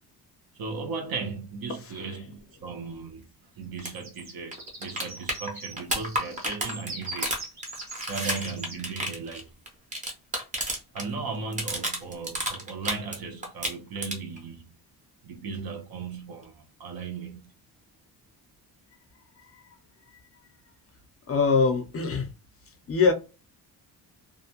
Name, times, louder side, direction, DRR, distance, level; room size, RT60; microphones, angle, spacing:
voice 1, 0.5-3.3 3.6-7.4 8.1-9.5 10.9-14.8 15.2-17.5, right 4 dB, 65° right, 0.8 m, -36 dB
voice 2, 1.8-2.2 19.4-19.6 20.1-20.2 21.3-22.3 22.7-23.1, left 5 dB, 35° left, 0.5 m, -25 dB
sound 1, 3.8-3.9 4.2-4.3 4.5-11.1 11.3-13.2 13.4-14.4 16.4-16.5, right 1 dB, 20° right, 0.6 m, -31 dB
sound 2, 3.8-8.8, right 2 dB, 45° right, 1.1 m, -42 dB
2.5 x 2.1 x 2.8 m
wide cardioid pair, 155°, 39 cm